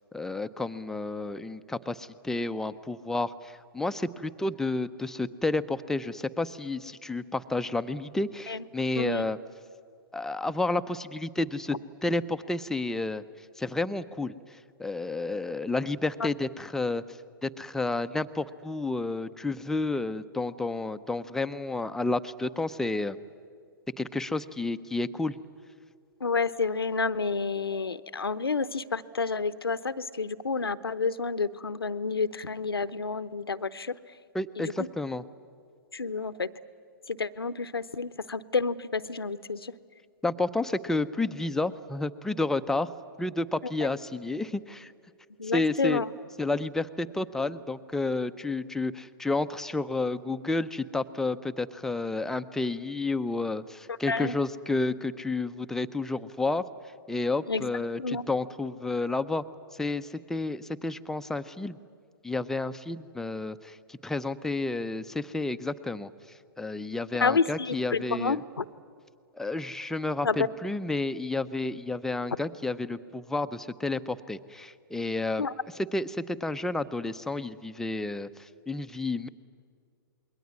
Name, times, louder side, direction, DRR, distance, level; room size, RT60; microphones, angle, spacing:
voice 1, 0.1-9.4 10.1-13.2 13.6-14.3 14.8-17.0 17.4-23.2 24.0-25.3 34.3-35.2 40.2-42.9 43.2-44.9 45.5-46.0 46.4-56.6 57.1-59.4 59.8-61.8 62.2-66.1 66.6-68.4 69.4-75.5 75.8-78.3 78.7-79.3, left 2 dB, 5° left, 10 dB, 0.6 m, -31 dB
voice 2, 9.0-9.3 16.2-16.3 26.2-33.9 34.6-34.9 35.9-36.5 37.1-39.7 45.4-46.1 54.1-54.3 57.5-57.7 58.0-58.2 67.2-68.6 70.2-70.5 75.4-75.5, left 4 dB, 85° left, 15 dB, 0.8 m, -29 dB
27.5 x 21.5 x 9.5 m, 2.2 s
figure-of-eight pair, 120°, 12 cm